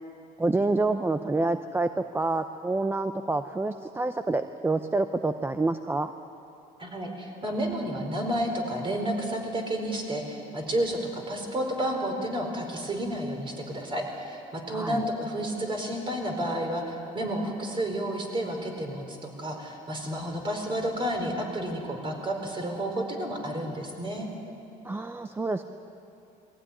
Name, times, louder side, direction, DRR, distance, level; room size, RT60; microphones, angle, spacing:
voice 1, 0.4-6.1 14.7-15.0 24.8-25.6, right 2 dB, 15° right, 9 dB, 0.6 m, -27 dB
voice 2, 6.8-24.3, right 1 dB, 30° right, 2 dB, 4.5 m, -31 dB
21.5 x 15.5 x 9.9 m, 2.7 s
cardioid pair, 110°, 17 cm